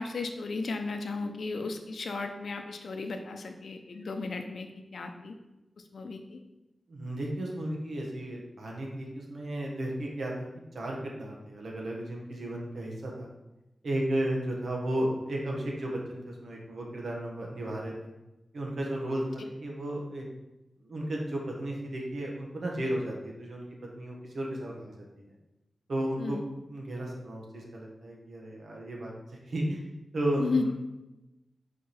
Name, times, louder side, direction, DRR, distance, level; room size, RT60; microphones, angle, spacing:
voice 1, 0.0-5.3 5.9-6.4 26.2-26.4 30.4-30.7, left 3 dB, 75° left, 5 dB, 0.6 m, -34 dB
voice 2, 6.9-10.5 10.7-13.3 13.8-18.1 18.5-20.3 20.8-23.7 23.9-24.9 25.9-29.1 29.5-29.8 30.1-30.7, right 1 dB, 70° right, -1 dB, 1.3 m, -34 dB
5.0 x 4.7 x 4.3 m, 0.99 s
wide cardioid pair, 100°, 0 cm